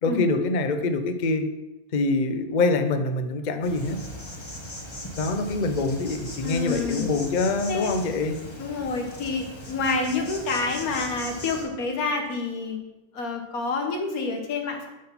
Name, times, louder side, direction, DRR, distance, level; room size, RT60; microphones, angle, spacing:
voice 1, 0.0-1.5 1.9-4.0 5.2-8.4, left 3 dB, 55° left, 8 dB, 0.5 m, -25 dB
Insect, 3.6-11.6, left 1 dB, 20° left, 1.1 m, -39 dB
voice 2, 6.4-7.1 7.7-7.9 8.6-12.8 13.1-14.9, left 4 dB, 75° left, 4 dB, 1.5 m, -28 dB
8.4 x 4.1 x 5.8 m, 1.0 s
omnidirectional pair, 1.6 m